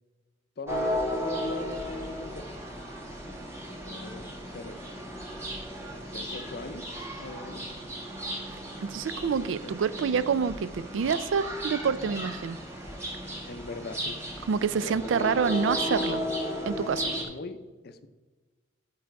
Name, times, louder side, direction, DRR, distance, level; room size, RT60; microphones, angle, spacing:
voice 1, 0.6-2.5 3.2-3.4 3.8-4.9 6.0-6.8 7.2-7.6 9.6-9.7 13.5-14.2 14.8-15.3 17.1-17.6 17.8-18.1, left 3 dB, 55° left, 10 dB, 0.5 m, -40 dB
sound 1, 0.7-17.2, equal, 15° right, 1.2 m, -35 dB
voice 2, 8.8-12.6 14.5-16.2 16.7-17.1, right 6 dB, 75° right, 16 dB, 0.4 m, -27 dB
10.5 x 4.7 x 4.6 m, 1.3 s
head